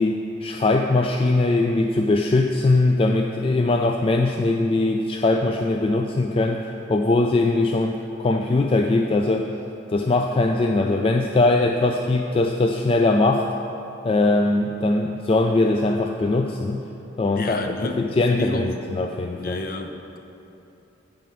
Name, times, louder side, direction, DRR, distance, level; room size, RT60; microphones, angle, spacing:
voice 1, 0.0-9.5 9.9-13.5 14.0-16.8 17.2-19.6, left 2 dB, 30° left, 4 dB, 0.3 m, -21 dB
voice 2, 17.3-18.0 18.3-18.8 19.4-20.2, left 1 dB, 50° left, 4 dB, 0.7 m, -30 dB
9.2 x 5.1 x 7.0 m, 2.9 s
head